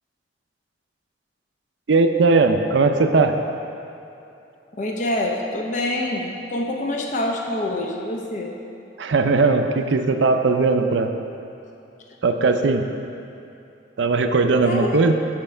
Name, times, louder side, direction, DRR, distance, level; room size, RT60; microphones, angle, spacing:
voice 1, 1.9-3.4 9.0-11.1 12.2-12.8 14.0-15.1, right 3 dB, 85° right, 7 dB, 0.5 m, -18 dB
voice 2, 4.7-8.5 14.6-15.1, left 1 dB, 45° left, 0 dB, 0.6 m, -26 dB
7.7 x 6.9 x 4.4 m, 2.8 s
head